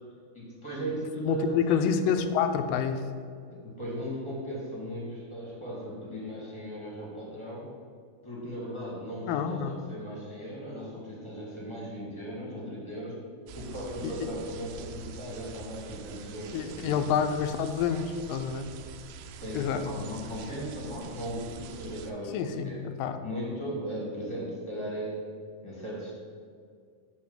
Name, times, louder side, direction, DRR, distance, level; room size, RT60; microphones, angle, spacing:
voice 1, 0.3-1.9 3.5-7.7 8.2-13.2 13.5-17.0 19.4-22.8 23.2-25.2 25.6-26.1, equal, 15° left, -5 dB, 1.1 m, -37 dB
voice 2, 1.3-3.0 9.3-9.8 14.0-14.1 16.5-18.7 19.5-19.8 22.3-23.2, left 7 dB, 80° left, 8 dB, 2.2 m, -28 dB
sound 1, 13.5-22.1, right 6 dB, 90° right, 2.4 m, -45 dB
7.8 x 4.5 x 7.2 m, 2.1 s
omnidirectional pair, 4.2 m